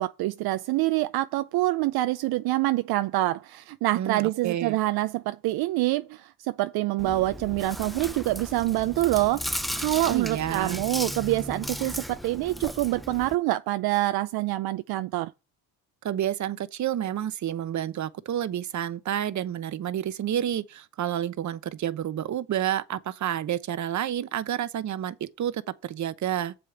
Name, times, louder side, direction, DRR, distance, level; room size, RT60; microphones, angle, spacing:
voice 1, 0.0-9.5 9.8-15.3, right 17 dB, 70° right, 0.6 m, -26 dB
voice 2, 4.0-4.8 10.1-10.8 16.0-26.5, right 11 dB, 45° right, 0.9 m, -29 dB
Chewing mastication, 7.0-13.3, equal, ahead, 0.5 m, -35 dB
7.5 x 5.1 x 7.1 m
supercardioid pair, 80°, 39 cm